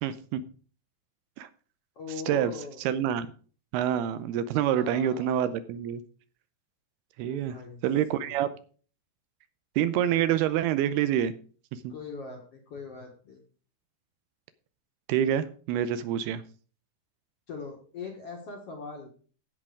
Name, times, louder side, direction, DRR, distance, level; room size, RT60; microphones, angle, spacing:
voice 1, 0.0-0.4 1.4-1.5 2.3-2.5 2.8-3.3 3.7-6.0 7.2-7.6 7.8-8.5 9.8-11.3 11.7-11.9 15.1-16.4, right 10 dB, 80° right, 13 dB, 2.5 m, -27 dB
voice 2, 2.0-2.8 4.3-5.5 7.3-7.8 8.1-8.5 11.9-13.4 17.5-19.1, left 4 dB, 55° left, 1 dB, 1.9 m, -41 dB
16.0 x 5.5 x 4.9 m, 0.40 s
omnidirectional pair, 4.8 m